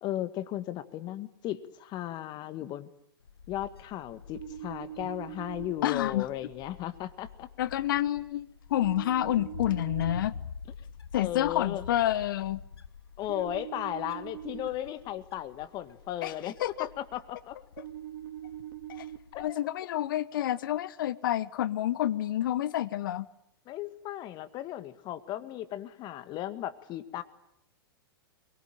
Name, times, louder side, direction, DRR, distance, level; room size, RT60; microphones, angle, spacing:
voice 1, 0.0-2.9 3.5-7.5 11.1-11.8 13.2-16.5 16.8-17.6 19.3-19.6 23.7-27.2, left 13 dB, 35° left, 2.0 m, -36 dB
Wind, 3.2-19.5, left 6 dB, 80° left, 1.1 m, -47 dB
sound 1, 4.3-5.7 8.8-10.2 13.3-14.7 17.8-19.2, right 12 dB, 55° right, 2.7 m, -42 dB
voice 2, 5.8-6.3 7.6-10.3 11.1-12.6 16.2-16.3 16.6-16.9 18.9-19.0 19.4-23.3, left 12 dB, 60° left, 1.2 m, -29 dB
24.5 x 23.0 x 9.2 m
figure-of-eight pair, 105°, 13 cm